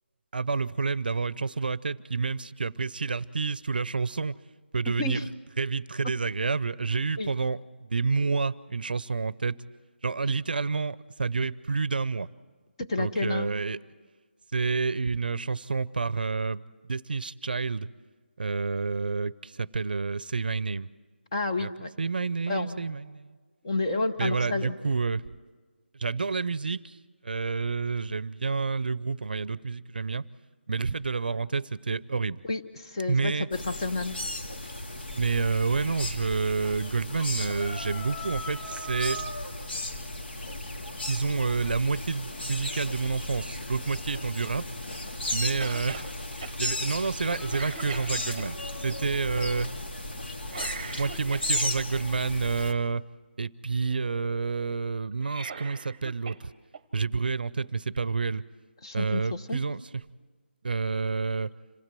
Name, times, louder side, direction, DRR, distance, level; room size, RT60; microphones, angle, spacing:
voice 1, 0.3-4.4 4.7-5.2 5.6-9.6 10.0-12.3 13.0-13.8 14.5-17.9 18.4-20.9 21.6-21.7 22.0-23.4 24.2-25.2 25.9-27.0 27.2-30.2 30.7-32.4 33.1-33.5 35.1-39.2 41.0-44.6 45.3-46.1 46.6-49.7 50.9-53.0 53.4-56.5 56.9-58.4 58.9-59.8 60.6-61.5, right 4 dB, 50° right, 19 dB, 0.7 m, -29 dB
voice 2, 12.8-13.5 21.3-21.9 22.5-22.8 23.6-24.8 32.4-34.2 58.8-59.6, left 2 dB, 25° left, 5 dB, 1.1 m, -30 dB
sound 1, 33.5-52.7, left 1 dB, 60° left, 2.6 m, -35 dB
Cough, 45.6-46.1 46.4-46.6 47.0-47.2 47.5-48.5 50.5-51.9 55.1-56.4 56.7-56.8 57.9-58.0, right 5 dB, 20° right, 1.1 m, -40 dB
27.0 x 16.0 x 7.6 m, 1.4 s
figure-of-eight pair, 175°, 6 cm